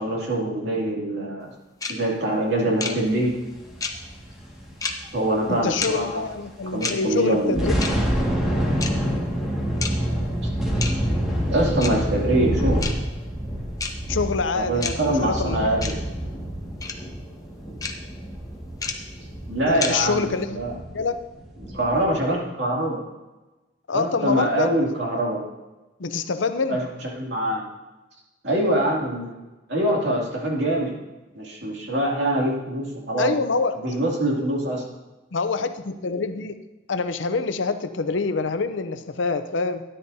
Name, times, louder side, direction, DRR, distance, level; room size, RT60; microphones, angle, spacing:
voice 1, 0.0-1.5 1.9-3.3 5.1-6.2 6.7-7.7 11.5-12.9 14.5-15.9 19.5-20.7 21.7-23.0 23.9-25.4 26.7-26.8 27.1-27.6 28.4-29.3 29.7-31.0 31.3-33.3 33.8-34.8, right 1 dB, 60° right, -2 dB, 2.6 m, -24 dB
sound 1, 1.8-1.9 2.8-2.9 3.8-3.9 4.8-4.9 5.8-5.9 6.8-6.9 7.8-7.9 8.8-8.9 9.8-9.9 10.8-10.9 11.8-11.9 12.8-12.9 13.8-13.9 14.8-14.9 15.8-15.9 16.8-16.9 17.8-17.9 18.8-18.9 19.8-19.9, left 4 dB, 20° left, 0.7 m, -28 dB
sound 2, 3.5-6.3 6.6-6.8 7.3-22.1, equal, 5° right, 1.9 m, -27 dB
voice 2, 5.5-7.7 14.1-15.8 19.7-21.2 23.9-24.8 26.0-26.8 33.2-33.9 35.3-36.6 36.9-39.8, left 4 dB, 75° left, 10 dB, 0.6 m, -26 dB
13.0 x 10.0 x 2.8 m, 1.1 s
head